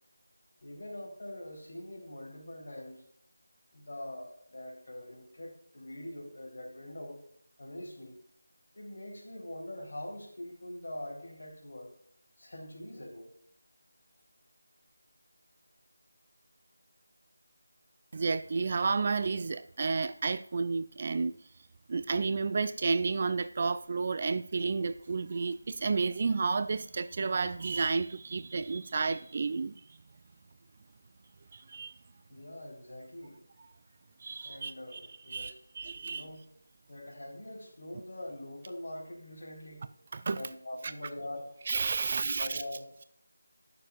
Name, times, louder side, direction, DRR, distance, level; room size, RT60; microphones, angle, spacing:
voice 1, 0.6-3.0 3.7-7.2 7.6-8.2 8.7-11.9 12.4-13.3 32.3-33.4 34.4-35.5 35.9-36.4 36.9-39.9 40.3-41.5 42.0-42.9, left 1 dB, 55° left, -1 dB, 4.1 m, -43 dB
voice 2, 18.1-21.3 21.9-29.7 31.5-31.9 34.2-35.0 35.3-36.2 40.1-40.4 41.7-42.6, right 4 dB, 35° right, 13 dB, 0.3 m, -31 dB
17.5 x 6.7 x 2.5 m, 0.66 s
figure-of-eight pair, 165°, 0 cm